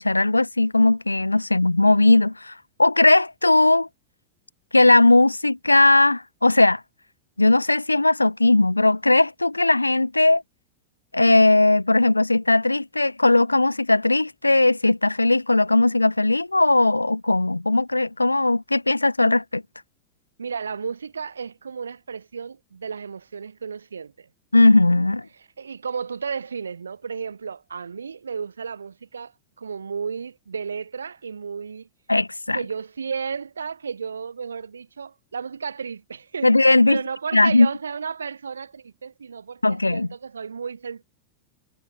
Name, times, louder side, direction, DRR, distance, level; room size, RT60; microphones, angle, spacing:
voice 1, 0.0-2.5 2.8-3.9 4.7-6.8 7.4-10.4 11.1-19.6 24.5-25.3 32.1-32.6 36.4-37.0 37.3-37.7 39.6-40.1, left 2 dB, 85° left, 0.8 m, -18 dB
voice 2, 20.4-24.3 25.6-29.3 29.6-31.9 32.5-41.0, right 6 dB, 75° right, 1.5 m, -33 dB
figure-of-eight pair, 90°, 0 cm